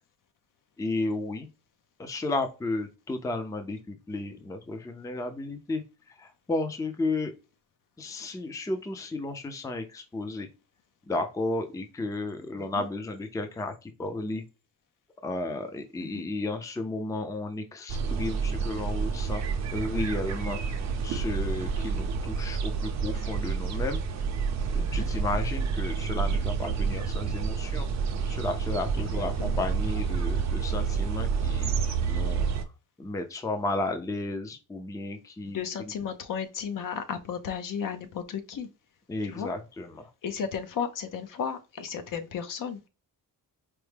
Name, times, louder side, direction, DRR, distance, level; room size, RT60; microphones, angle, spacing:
voice 1, 0.8-1.5 2.0-5.8 6.2-7.3 8.0-10.5 11.1-14.4 15.2-19.4 19.7-20.6 21.0-24.0 24.7-27.9 28.3-32.5 33.0-35.9 39.1-40.1, left 2 dB, 10° left, 0.4 m, -33 dB
sound 1, 17.9-32.6, right 5 dB, 50° right, 0.6 m, -29 dB
voice 2, 24.8-25.1 29.0-29.6 35.5-38.7 39.3-39.5 40.2-42.8, left 7 dB, 60° left, 0.7 m, -34 dB
4.5 x 2.1 x 3.2 m
wide cardioid pair, 160°, 35 cm